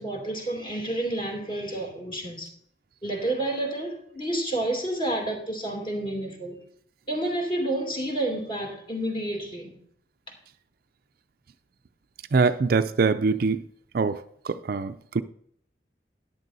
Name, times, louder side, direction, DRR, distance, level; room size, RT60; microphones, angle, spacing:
voice 1, 0.0-2.5 3.0-6.6 7.1-9.7, right 1 dB, 30° left, 1 dB, 2.6 m, -30 dB
voice 2, 12.3-13.6 13.9-14.2 14.5-15.2, right 4 dB, 55° right, 11 dB, 0.4 m, -23 dB
13.5 x 10.5 x 2.7 m, 0.65 s
head